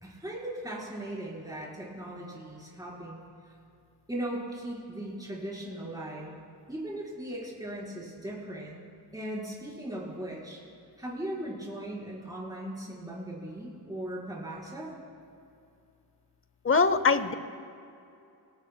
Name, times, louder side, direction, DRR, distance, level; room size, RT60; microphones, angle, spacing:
voice 1, 0.0-3.2 4.1-6.4 6.7-8.8 9.1-10.6 11.0-14.9, right 1 dB, 10° right, -6 dB, 4.2 m, -38 dB
voice 2, 16.6-17.3, left 4 dB, 35° left, 12 dB, 0.7 m, -22 dB
29.5 x 16.5 x 2.2 m, 2.6 s
wide cardioid pair, 95°, 40 cm